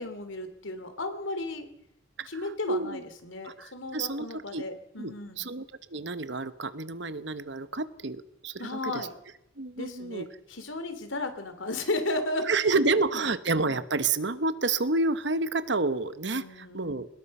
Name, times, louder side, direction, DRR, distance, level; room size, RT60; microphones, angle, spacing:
voice 1, 0.0-1.7 2.3-5.5 8.6-9.1 9.7-12.8 16.3-16.9, left 2 dB, 75° left, 9 dB, 3.2 m, -34 dB
voice 2, 2.2-3.0 3.4-4.3 4.5-4.6 5.0-5.6 5.9-9.1 9.6-10.3 12.5-17.1, right 3 dB, 60° right, 13 dB, 1.2 m, -29 dB
24.0 x 20.5 x 5.6 m, 0.81 s
head